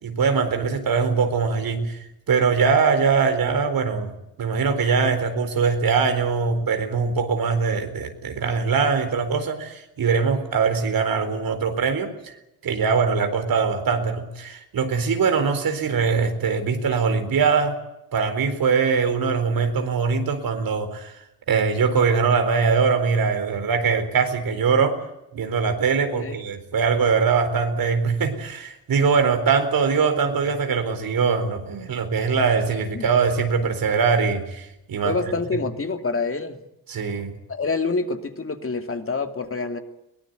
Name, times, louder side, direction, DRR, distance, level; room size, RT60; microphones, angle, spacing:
voice 1, 0.0-4.1 4.4-12.3 12.6-17.8 18.1-21.1 21.5-25.0 25.3-35.1 36.9-37.3, right 5 dB, 70° right, 7 dB, 4.3 m, -22 dB
voice 2, 35.0-36.6 37.5-39.8, left 4 dB, 35° left, 6 dB, 2.7 m, -27 dB
23.0 x 18.5 x 9.3 m, 0.87 s
cardioid pair, 75°, 36 cm